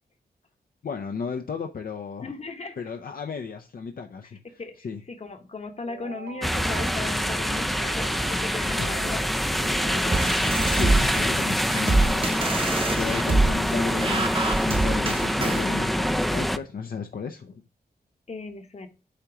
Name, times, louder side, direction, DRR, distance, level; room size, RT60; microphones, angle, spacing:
voice 1, 0.8-2.3 2.8-4.4 4.8-5.0 8.7-8.9 10.6-17.6, left 5 dB, 65° left, 0.7 m, -34 dB
voice 2, 2.2-2.8 4.6-10.2 13.4-13.5 18.3-18.9, left 3 dB, 40° left, 1.1 m, -37 dB
sound 1, 5.8-11.5, right 7 dB, 90° right, 0.7 m, -41 dB
sound 2, 6.4-16.6, equal, ahead, 0.4 m, -25 dB
sound 3, 10.1-15.7, right 2 dB, 35° right, 0.9 m, -26 dB
8.4 x 2.9 x 5.9 m
wide cardioid pair, 135°, 16 cm